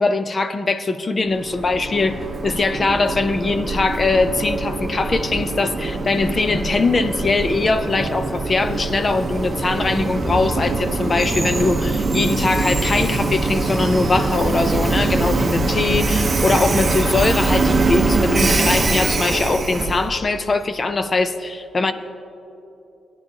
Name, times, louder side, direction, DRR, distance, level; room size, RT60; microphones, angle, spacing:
voice 1, 0.0-21.9, left 3 dB, 25° left, 11 dB, 0.5 m, -21 dB
Train, 1.3-20.1, right 3 dB, 30° right, 0.8 m, -22 dB
17.0 x 10.5 x 2.8 m, 2.9 s
wide cardioid pair, 155°, 0 cm